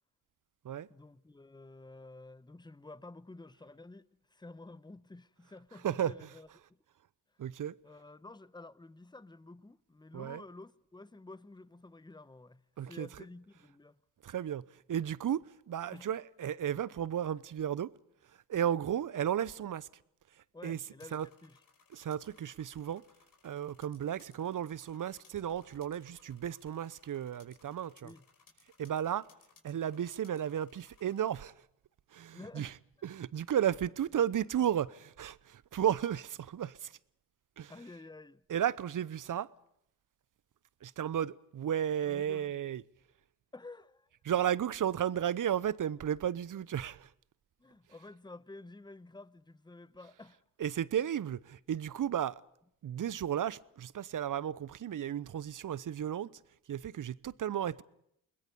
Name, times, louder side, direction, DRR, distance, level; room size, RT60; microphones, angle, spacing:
voice 1, 0.9-6.8 7.8-14.0 15.9-16.1 20.5-21.6 28.0-28.2 32.3-32.8 37.7-38.4 42.0-42.7 43.5-44.1 47.6-50.4, left 2 dB, 10° left, 0.9 m, -51 dB
voice 2, 5.8-6.3 7.4-7.8 10.1-10.4 12.8-13.1 14.2-17.9 18.5-19.9 20.6-20.8 21.1-21.3 21.9-23.0 23.4-28.1 28.8-29.3 29.6-31.5 32.1-32.7 33.0-36.9 37.6-37.7 38.5-39.5 40.8-42.8 44.2-47.1 50.6-52.4 52.8-56.3 56.7-57.8, right 10 dB, 45° right, 0.9 m, -34 dB
sound 1, 21.0-31.4, left 4 dB, 50° left, 5.7 m, -65 dB
29.5 x 21.0 x 5.4 m
hypercardioid pair, 50°, 43 cm